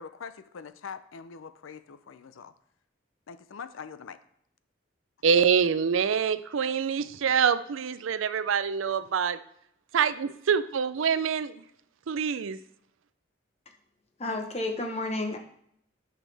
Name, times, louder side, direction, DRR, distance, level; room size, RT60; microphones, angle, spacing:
voice 1, 0.0-2.5 3.3-4.2, left 6 dB, 85° left, 13 dB, 0.5 m, -43 dB
voice 2, 5.2-9.4 9.9-11.6 12.1-12.6, right 6 dB, 80° right, 14 dB, 0.5 m, -25 dB
voice 3, 14.2-15.4, left 2 dB, 30° left, 4 dB, 0.9 m, -31 dB
8.9 x 6.0 x 3.4 m, 0.71 s
head